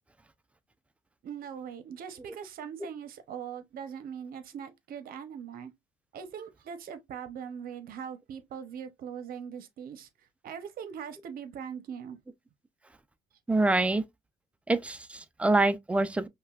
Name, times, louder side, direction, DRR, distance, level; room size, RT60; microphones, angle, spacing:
voice 1, 1.2-5.7 6.1-10.1 10.4-12.2, right 7 dB, 60° right, 0.7 m, -41 dB
voice 2, 13.5-14.0 14.7-16.3, right 2 dB, 5° right, 0.3 m, -25 dB
5.4 x 2.2 x 2.3 m
cardioid pair, 110°, 17 cm